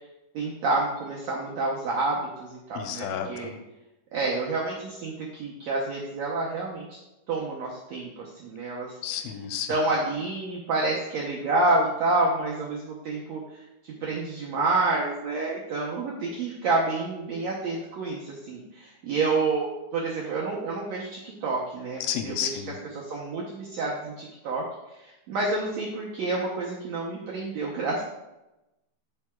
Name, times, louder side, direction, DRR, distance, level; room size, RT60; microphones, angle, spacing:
voice 1, 0.3-3.5 4.1-6.9 7.3-8.9 9.7-22.6 22.9-24.6 24.9-28.0, right 3 dB, 90° right, -3 dB, 1.5 m, -28 dB
voice 2, 2.8-3.6 9.0-9.7 22.0-22.8, left 9 dB, 80° left, 6 dB, 2.2 m, -31 dB
11.5 x 4.7 x 2.3 m, 0.97 s
omnidirectional pair, 4.3 m